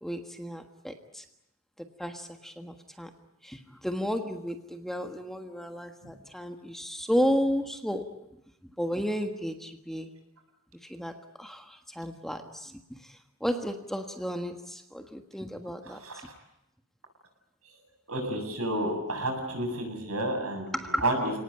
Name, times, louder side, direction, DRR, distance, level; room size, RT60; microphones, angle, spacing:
voice 1, 0.0-1.2 1.8-3.1 3.4-8.2 8.8-10.1 10.8-16.3 20.7-21.2, equal, ahead, 5 dB, 1.4 m, -33 dB
voice 2, 15.9-16.3 18.1-20.8 21.0-21.3, right 1 dB, 80° right, 3 dB, 8.0 m, -30 dB
30.0 x 19.0 x 9.0 m, 0.88 s
head